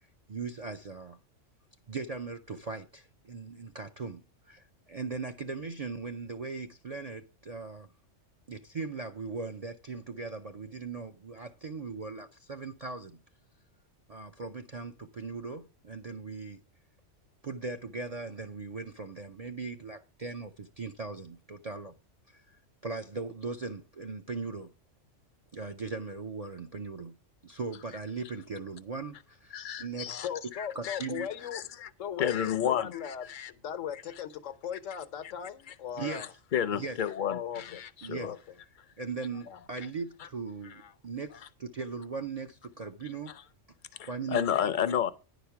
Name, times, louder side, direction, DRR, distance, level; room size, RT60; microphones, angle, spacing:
voice 1, 0.3-1.2 1.9-7.9 8.5-13.2 14.1-16.6 17.4-21.9 22.3-24.7 25.5-27.1 27.4-30.3 30.8-31.3 36.0-36.2 36.7-37.0 38.0-38.3 39.0-43.3 44.0-44.7, right 4 dB, 45° right, 0.5 m, -39 dB
voice 2, 29.5-31.3 31.5-31.9 32.2-33.5 36.1-38.3 39.8-39.9 44.0-45.1, left 9 dB, 50° left, 0.7 m, -32 dB
voice 3, 30.2-31.6 32.0-36.3 37.2-37.8 38.2-38.4 39.5-39.6, left 9 dB, 90° left, 1.2 m, -38 dB
10.0 x 5.0 x 5.8 m
omnidirectional pair, 1.3 m